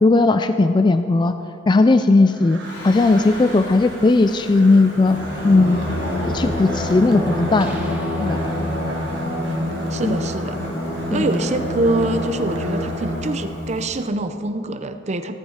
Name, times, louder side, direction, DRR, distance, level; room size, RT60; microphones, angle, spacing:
voice 1, 0.0-1.3 1.7-2.6 2.8-5.2 5.4-5.8 6.2-7.7 8.2-8.4 10.0-10.2 11.1-11.3, left 3 dB, 25° left, 9 dB, 0.3 m, -16 dB
Crow, 2.2-13.3, right 3 dB, 70° right, 1.5 m, -41 dB
Singing, 2.6-14.0, left 1 dB, 60° left, 3.5 m, -27 dB
sound 1, 7.6-9.1, right 1 dB, 10° right, 1.7 m, -44 dB
voice 2, 9.9-10.6 11.1-15.4, right 2 dB, 35° right, 9 dB, 0.6 m, -24 dB
15.0 x 13.5 x 4.3 m, 2.9 s
head